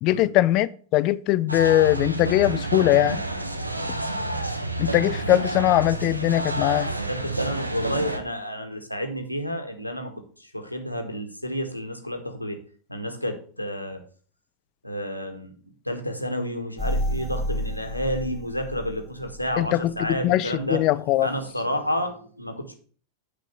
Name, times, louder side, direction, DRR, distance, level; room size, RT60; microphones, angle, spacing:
voice 1, 0.0-3.2 4.8-6.9 19.6-19.9 20.2-21.3, left 15 dB, 40° left, 0.4 m, -21 dB
sound 1, 1.5-8.2, right 2 dB, 85° right, 0.9 m, -29 dB
voice 2, 3.7-4.0 6.9-12.6 12.9-14.0 14.8-15.6 15.8-20.9 21.2-22.8, equal, 90° left, 1.4 m, -30 dB
sound 2, 16.8-19.6 20.1-20.2, equal, 5° right, 2.6 m, -30 dB
8.9 x 4.2 x 6.5 m
figure-of-eight pair, 90°, 0 cm